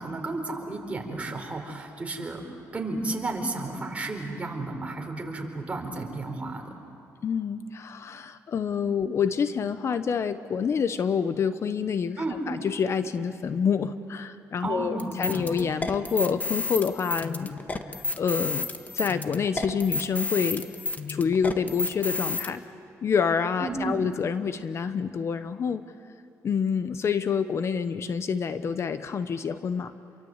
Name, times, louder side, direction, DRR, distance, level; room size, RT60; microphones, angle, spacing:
voice 1, 0.0-2.4 2.7-6.7 12.2-12.4 14.6-15.5 23.6-24.0, right 2 dB, 20° right, 2 dB, 4.5 m, -33 dB
voice 2, 7.2-12.2 12.5-17.5 18.2-18.7 18.9-20.7 21.1-22.6 23.0-25.8 26.4-29.9, left 6 dB, 50° left, 11 dB, 0.9 m, -27 dB
sound 1, 15.0-22.5, left 3 dB, 25° left, 1.6 m, -31 dB
29.0 x 23.5 x 8.1 m, 2.8 s
cardioid pair, 105°, 6 cm